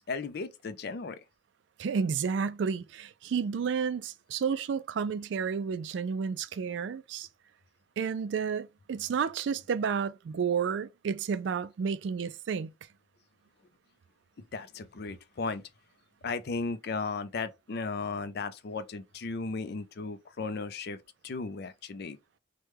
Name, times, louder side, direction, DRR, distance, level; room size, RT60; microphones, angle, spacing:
voice 1, 0.1-1.2 14.5-15.6 16.2-21.0 21.2-22.2, left 4 dB, 55° left, 0.4 m, -35 dB
voice 2, 1.8-7.3 8.0-12.7, right 6 dB, 65° right, 0.3 m, -31 dB
3.1 x 2.2 x 3.3 m
head